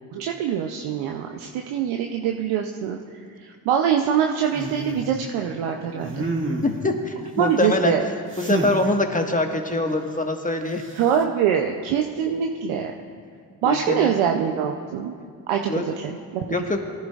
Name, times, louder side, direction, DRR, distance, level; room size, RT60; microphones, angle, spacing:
voice 1, 0.1-3.0 3.4-6.3 7.4-8.0 11.0-12.9 13.6-15.1 15.5-15.7 16.0-16.4, right 8 dB, 85° right, 2 dB, 0.7 m, -24 dB
sound 1, 4.5-5.1 6.0-6.9 8.3-8.8 10.8-11.2, right 2 dB, 25° right, 2.0 m, -28 dB
voice 2, 6.6-10.8 13.6-14.2 15.7-15.8 16.4-16.8, left 2 dB, 15° left, 3 dB, 1.5 m, -24 dB
18.0 x 11.0 x 2.4 m, 2.2 s
supercardioid pair, 45°, 48 cm